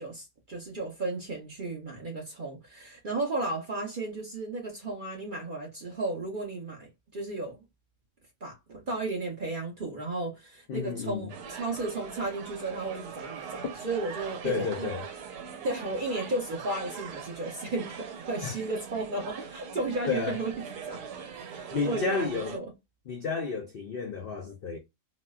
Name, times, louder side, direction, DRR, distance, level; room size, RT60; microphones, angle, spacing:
voice 1, 0.0-7.6 8.4-14.9 15.6-21.0 21.3-22.7, right 2 dB, 45° right, 0.7 m, -34 dB
voice 2, 10.7-11.3 14.4-15.0 18.4-18.6 20.1-20.4 21.7-22.5 23.1-24.8, left 5 dB, 80° left, 0.5 m, -31 dB
sound 1, 11.3-22.6, right 7 dB, 80° right, 1.3 m, -41 dB
4.0 x 2.1 x 2.3 m
omnidirectional pair, 1.6 m